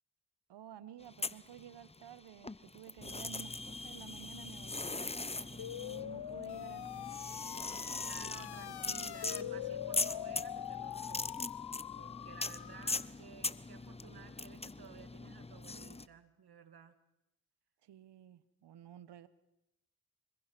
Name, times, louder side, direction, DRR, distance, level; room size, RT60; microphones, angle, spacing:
voice 1, 0.5-7.1 17.8-19.3, right 10 dB, 85° right, 16 dB, 1.1 m, -53 dB
sound 1, 1.0-2.1 2.4-16.1, left 3 dB, 15° left, 0.8 m, -41 dB
sound 2, 5.6-13.1, left 11 dB, 70° left, 0.9 m, -43 dB
voice 2, 8.1-11.5 12.0-17.0, right 7 dB, 65° right, 10 dB, 2.0 m, -55 dB
25.0 x 21.5 x 6.1 m, 0.90 s
supercardioid pair, 45°, 40 cm